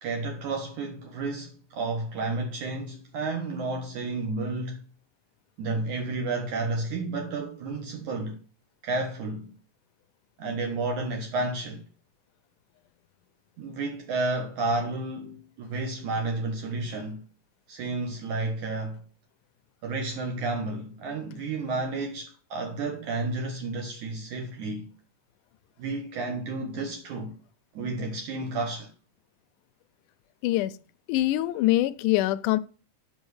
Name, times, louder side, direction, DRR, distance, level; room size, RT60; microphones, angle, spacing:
voice 1, 0.0-4.8 5.6-8.4 8.8-9.5 10.4-11.8 13.6-17.2 17.7-19.0 19.8-24.9 25.8-27.4 27.7-28.9, right 3 dB, 65° right, 2.5 m, -31 dB
voice 2, 30.4-30.8 31.1-32.6, left 15 dB, 80° left, 2.0 m, -24 dB
8.0 x 5.9 x 6.4 m
omnidirectional pair, 4.0 m